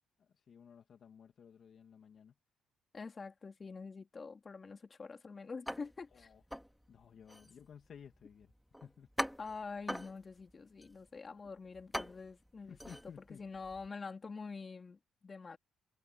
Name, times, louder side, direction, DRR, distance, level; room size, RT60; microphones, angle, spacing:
voice 1, 0.2-2.3 6.1-6.4 6.9-8.5 8.8-9.1 12.7-13.4, left 7 dB, 55° left, 2.6 m, -55 dB
voice 2, 2.9-6.3 9.4-12.8 13.3-15.6, left 4 dB, 35° left, 3.4 m, -46 dB
sound 1, 5.7-13.9, equal, ahead, 2.7 m, -44 dB
cardioid pair, 90°, 0 cm